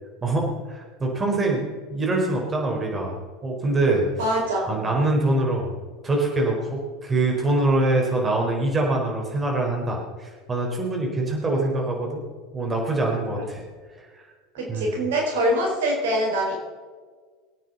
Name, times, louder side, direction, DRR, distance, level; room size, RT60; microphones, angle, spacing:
voice 1, 0.2-3.2 3.4-4.1 4.7-5.7 6.0-12.2 12.5-13.6 14.1-14.2 14.7-14.9, right 2 dB, 25° right, 0 dB, 4.4 m, -24 dB
voice 2, 4.2-5.0 13.4-13.5 14.5-16.6, right 1 dB, 70° right, -1 dB, 4.4 m, -24 dB
24.5 x 9.2 x 4.1 m, 1.5 s
figure-of-eight pair, 75°, 0 cm